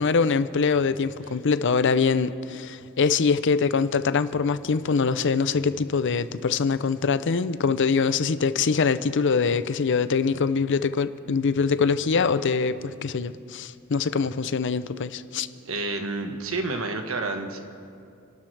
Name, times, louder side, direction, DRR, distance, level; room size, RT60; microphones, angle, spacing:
voice 1, 0.0-15.5, left 5 dB, 60° left, 13 dB, 0.6 m, -23 dB
voice 2, 15.6-17.6, right 3 dB, 70° right, 5 dB, 1.4 m, -29 dB
29.0 x 12.5 x 3.4 m, 2.5 s
head